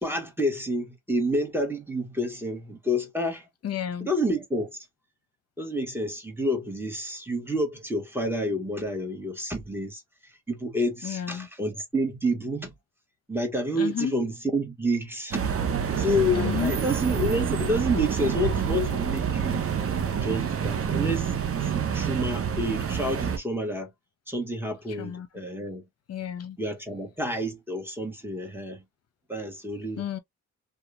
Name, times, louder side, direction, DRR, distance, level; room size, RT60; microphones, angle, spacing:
voice 1, 0.0-3.5 4.0-4.8 5.6-12.7 13.3-15.5 16.0-19.7 20.2-23.9 24.3-25.8 26.6-28.8 29.3-30.0, equal, 5° right, 1.3 m, -29 dB
voice 2, 3.6-4.1 11.0-11.5 13.8-14.1 16.3-16.7 25.0-25.3 26.1-26.6 30.0-30.2, left 9 dB, 55° left, 0.7 m, -31 dB
sound 1, 15.3-23.4, right 7 dB, 45° right, 0.7 m, -27 dB
2.8 x 2.3 x 2.3 m
supercardioid pair, 65°, 31 cm